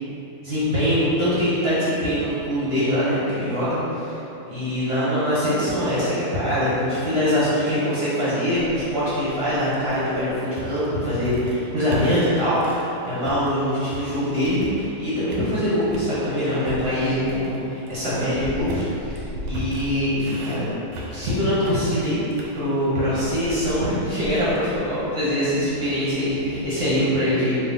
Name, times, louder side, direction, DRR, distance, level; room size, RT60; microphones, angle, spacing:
voice 1, 0.4-4.2 4.5-20.7 21.1-22.2 22.5-27.6, equal, 45° right, -11 dB, 0.9 m, -23 dB
sound 1, 8.5-12.9 13.2-15.0 15.3-16.1 16.6-27.1, right 1 dB, 85° right, 1.3 m, -37 dB
3.9 x 2.5 x 3.7 m, 3.0 s
omnidirectional pair, 1.9 m